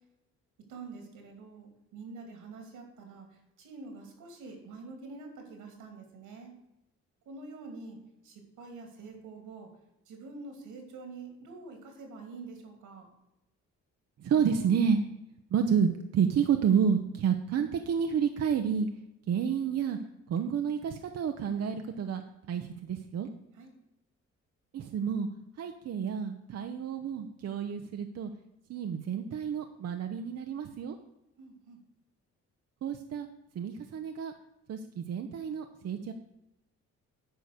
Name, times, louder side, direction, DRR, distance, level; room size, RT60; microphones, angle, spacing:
voice 1, 0.7-6.5 7.2-8.0 8.2-9.7 10.1-13.1 23.6-23.7 31.4-31.8, right 3 dB, 85° right, 4 dB, 2.7 m, -46 dB
voice 2, 14.2-15.0 15.5-18.9 19.3-20.0 20.3-22.2 22.5-23.3 24.7-25.3 25.6-28.3 28.7-31.0 32.8-33.3 33.5-34.3 34.7-36.1, right 7 dB, 55° right, 6 dB, 0.8 m, -30 dB
9.2 x 5.1 x 6.6 m, 0.90 s
cardioid pair, 90°, 30 cm